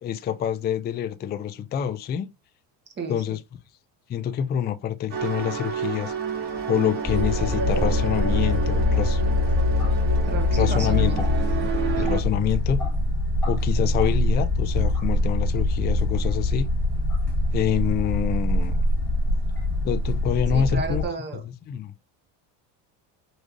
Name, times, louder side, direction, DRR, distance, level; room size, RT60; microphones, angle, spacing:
voice 1, 0.0-2.3 3.1-3.4 4.1-9.2 10.6-11.1 12.0-12.8 13.5-16.7 17.5-18.8 19.8-21.0 21.7-21.9, left 9 dB, 25° left, 0.4 m, -26 dB
voice 2, 3.0-3.4 10.2-11.2 11.9-12.1 20.5-21.4, right 5 dB, 25° right, 1.3 m, -32 dB
sound 1, 5.1-12.2, right 6 dB, 65° right, 2.2 m, -30 dB
sound 2, 7.0-21.1, left 2 dB, 5° left, 1.5 m, -23 dB
5.2 x 3.1 x 2.5 m
cardioid pair, 140°, 45 cm